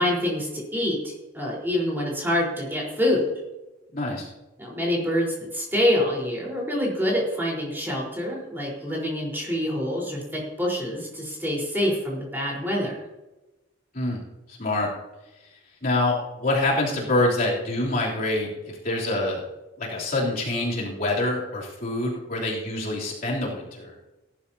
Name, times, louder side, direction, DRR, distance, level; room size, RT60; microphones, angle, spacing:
voice 1, 0.0-3.3 4.6-13.0, left 1 dB, 10° right, -4 dB, 4.2 m, -26 dB
voice 2, 3.9-4.3 13.9-14.2 14.6-14.9 15.8-18.5 18.8-19.4 19.8-23.9, left 2 dB, 45° left, -5 dB, 3.3 m, -25 dB
18.0 x 11.5 x 2.8 m, 1.1 s
head